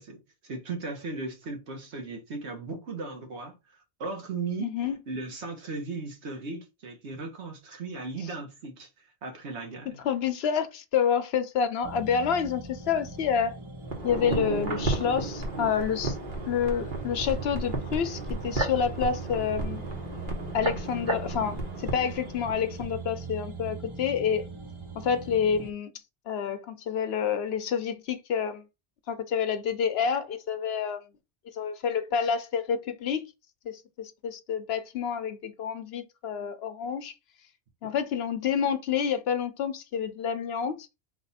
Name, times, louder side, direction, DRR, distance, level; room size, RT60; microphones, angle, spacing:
voice 1, 0.0-4.7 5.1-8.9 9.2-10.0 37.8-37.9, right 3 dB, 80° right, 1.4 m, -37 dB
voice 2, 4.6-5.0 10.0-13.6 14.0-16.2 16.5-19.8 20.5-24.5 25.0-25.9 26.3-28.6 29.1-31.0 31.5-33.3 33.7-37.1 37.8-40.9, left 7 dB, 70° left, 0.9 m, -28 dB
sound 1, 11.8-25.7, right 4 dB, 35° right, 0.6 m, -41 dB
sound 2, 13.8-22.9 23.2-23.3, right 2 dB, 50° right, 1.3 m, -33 dB
4.0 x 2.5 x 4.0 m
omnidirectional pair, 1.1 m